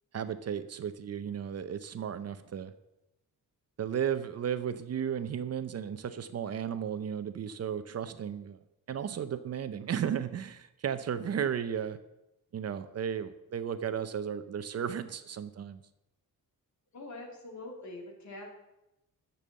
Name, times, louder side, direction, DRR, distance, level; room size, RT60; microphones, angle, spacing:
voice 1, 0.1-2.7 3.8-8.6 8.9-12.0 12.5-15.8, right 8 dB, 45° right, 11 dB, 0.6 m, -34 dB
voice 2, 16.9-18.5, left 2 dB, 55° left, 1 dB, 2.9 m, -44 dB
10.5 x 7.0 x 7.5 m, 0.92 s
wide cardioid pair, 160°, 35 cm